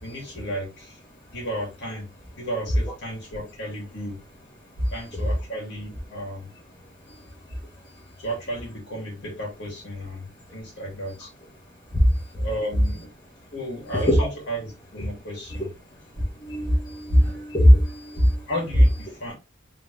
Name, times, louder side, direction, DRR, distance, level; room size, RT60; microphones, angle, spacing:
voice 1, 0.0-1.0 1.3-2.1 2.4-4.2 4.9-6.5 8.2-11.3 12.3-13.1 13.5-15.7 18.5-19.3, equal, 60° left, 2.2 m, -33 dB
voice 2, 16.4-18.3, equal, 25° left, 1.3 m, -18 dB
3.6 x 3.3 x 3.1 m
head